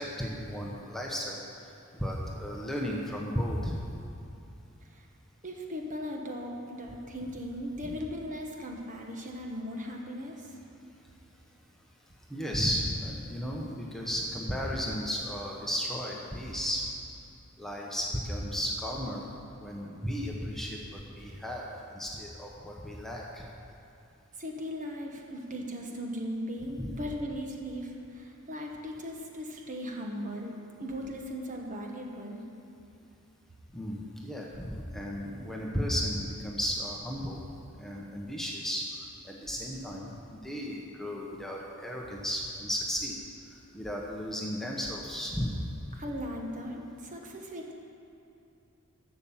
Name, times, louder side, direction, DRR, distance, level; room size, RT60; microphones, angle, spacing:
voice 1, 0.0-1.4 2.0-3.8 12.3-16.9 17.6-19.3 19.6-20.8 21.2-21.7 21.9-23.4 26.8-26.9 33.7-37.4 37.8-38.8 39.2-43.2 43.7-45.6, equal, ahead, -3 dB, 1.0 m, -34 dB
voice 2, 5.4-10.6 24.3-32.4 45.9-47.7, equal, 35° right, 1 dB, 1.4 m, -38 dB
11.5 x 7.1 x 7.3 m, 2.7 s
head